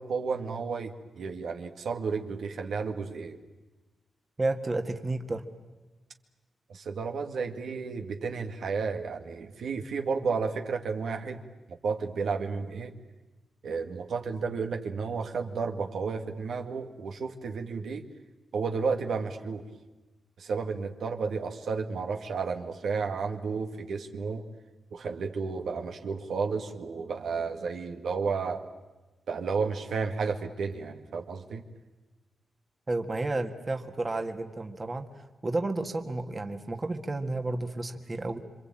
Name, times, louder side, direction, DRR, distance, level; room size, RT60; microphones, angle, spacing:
voice 1, 0.0-3.4 6.7-11.4 11.8-12.9 13.6-18.0 18.5-19.6 20.4-24.4 24.9-28.6 29.3-31.6, right 5 dB, 75° right, 5 dB, 1.9 m, -32 dB
voice 2, 4.4-5.4 32.9-38.4, right 2 dB, 30° right, 5 dB, 1.8 m, -31 dB
27.0 x 24.5 x 9.0 m, 1.2 s
cardioid pair, 100°, 0 cm